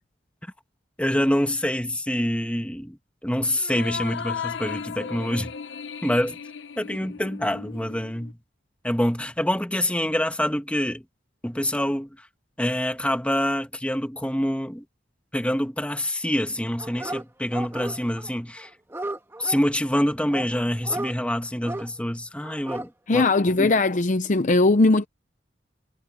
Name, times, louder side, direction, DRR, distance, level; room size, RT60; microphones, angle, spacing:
voice 1, 1.0-3.0 3.2-5.5 6.0-6.4 6.8-8.4 8.8-11.0 11.4-12.3 12.6-14.8 15.3-18.7 19.4-23.3 23.6-23.7, equal, 5° left, 1.9 m, -26 dB
sound 1, 3.6-8.3, left 6 dB, 75° left, 0.8 m, -36 dB
Dog, 16.8-17.2 17.5-18.3 18.6-19.6 20.3-21.1 21.6-21.9 22.4-22.9 23.2-23.3, right 2 dB, 15° right, 1.8 m, -34 dB
voice 2, 23.1-25.1, left 2 dB, 40° left, 0.6 m, -19 dB
head